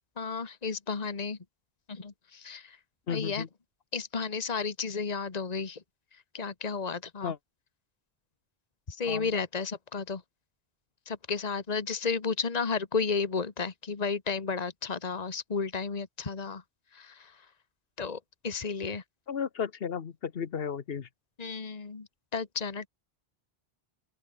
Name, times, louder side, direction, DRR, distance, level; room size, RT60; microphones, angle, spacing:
voice 1, 0.2-1.4 1.9-2.6 3.1-3.4 3.9-5.8 6.3-7.3 8.9-10.2 11.1-16.6 17.0-17.1 18.0-18.2 18.4-19.0 21.4-22.9, left 5 dB, 40° left, 1.5 m, -32 dB
voice 2, 3.1-3.5 7.2-7.4 9.1-9.3 19.3-21.1, left 7 dB, 70° left, 1.3 m, -34 dB
open air
omnidirectional pair, 1.0 m